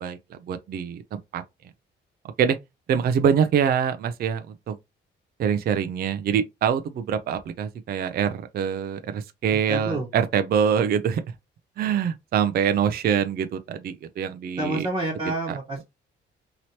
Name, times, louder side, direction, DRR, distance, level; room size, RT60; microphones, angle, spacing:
voice 1, 0.0-1.4 2.4-2.6 2.9-4.7 5.4-11.2 11.8-14.9 15.5-15.6, right 7 dB, 50° right, 0.4 m, -24 dB
voice 2, 9.7-10.1 14.6-15.8, right 2 dB, 20° right, 1.1 m, -28 dB
2.9 x 2.9 x 2.8 m
cardioid pair, 90°, 20 cm